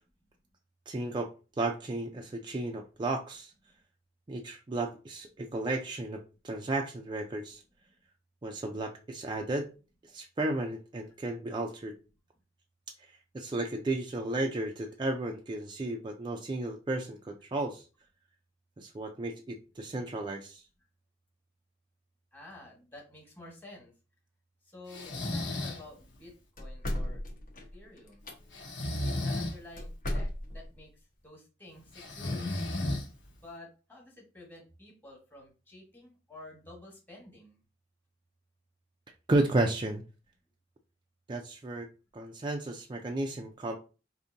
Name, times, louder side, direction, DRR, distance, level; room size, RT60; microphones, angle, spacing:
voice 1, 0.9-3.5 4.3-7.6 8.4-9.7 10.0-12.0 13.0-17.8 18.8-20.6 39.3-40.0 41.3-41.9 42.1-43.8, right 2 dB, 25° right, 0.4 m, -33 dB
voice 2, 22.3-23.9 24.6-27.2 27.7-28.3 29.0-30.9 31.2-32.5 33.3-37.6, left 2 dB, 10° left, 1.3 m, -51 dB
Breathing, 24.9-25.8 28.5-29.6 31.9-33.3, left 1 dB, 70° left, 1.0 m, -33 dB
sound 1, 26.6-28.3 29.8-30.8, left 1 dB, 45° left, 0.9 m, -35 dB
5.0 x 2.7 x 2.6 m
head